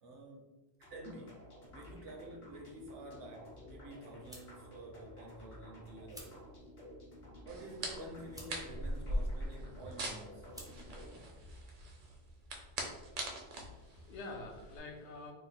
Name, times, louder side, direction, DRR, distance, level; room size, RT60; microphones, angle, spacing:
voice 1, 0.0-0.5 0.8-1.5 1.7-6.4 7.4-10.5, right 1 dB, 80° right, 1 dB, 1.0 m, -50 dB
sound 1, 0.8-11.3, equal, 45° left, 0.9 m, -54 dB
sound 2, 1.7-12.0, right 1 dB, 5° right, 0.3 m, -58 dB
sound 3, 7.5-14.8, right 1 dB, 55° right, 0.6 m, -41 dB
voice 2, 13.4-15.3, left 2 dB, 75° left, 1 dB, 0.9 m, -47 dB
3.0 x 2.2 x 4.1 m, 1.2 s
omnidirectional pair, 1.2 m